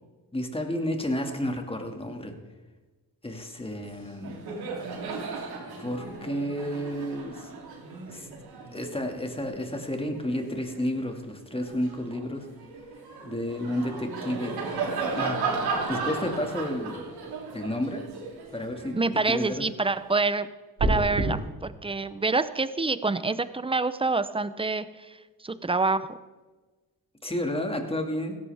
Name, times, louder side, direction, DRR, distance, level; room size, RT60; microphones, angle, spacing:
voice 1, 0.3-2.3 3.2-4.4 5.8-7.6 8.1-8.3 8.7-12.5 13.2-14.6 15.1-15.4 15.9-17.1 17.5-18.0 18.5-19.6 27.2-28.4, left 1 dB, 15° left, 4 dB, 2.2 m, -31 dB
Laughter, 3.7-3.9 4.2-10.9 11.4-19.6, right 4 dB, 75° right, 3.3 m, -35 dB
voice 2, 18.9-20.5 20.8-25.2 25.4-26.2, right 3 dB, 15° right, 14 dB, 0.8 m, -27 dB
sound 1, 20.8-21.3, right 2 dB, 60° right, 4.4 m, -24 dB
16.5 x 14.0 x 3.6 m, 1.3 s
cardioid pair, 70°, 38 cm